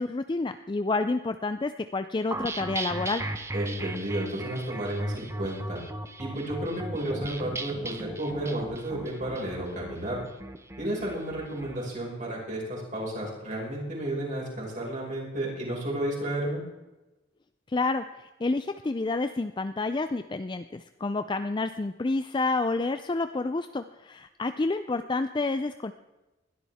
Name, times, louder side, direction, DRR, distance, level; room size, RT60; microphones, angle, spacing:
voice 1, 0.0-3.3 17.7-25.9, left 3 dB, 25° left, 10 dB, 0.4 m, -29 dB
sound 1, 2.3-11.8, right 2 dB, 15° right, 0.9 m, -37 dB
voice 2, 3.5-5.8 6.2-10.2 10.8-16.6, right 1 dB, 40° right, -3 dB, 5.5 m, -32 dB
20.5 x 13.0 x 3.6 m, 1.0 s
head